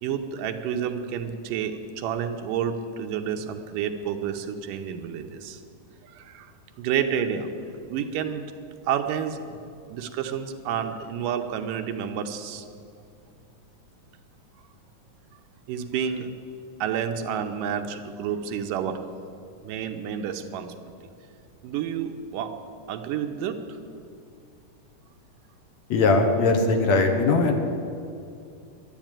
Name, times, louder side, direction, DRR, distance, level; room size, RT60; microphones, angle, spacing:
voice 1, 0.0-5.6 6.0-6.5 6.8-8.5 8.8-9.6 9.9-12.7 15.7-16.3 16.8-19.0 19.6-20.7 21.6-22.5 22.9-23.6, right 8 dB, 85° right, 6 dB, 2.5 m, -30 dB
voice 2, 25.9-27.5, left 3 dB, 65° left, 4 dB, 2.2 m, -20 dB
12.0 x 11.0 x 9.0 m, 2.5 s
omnidirectional pair, 3.7 m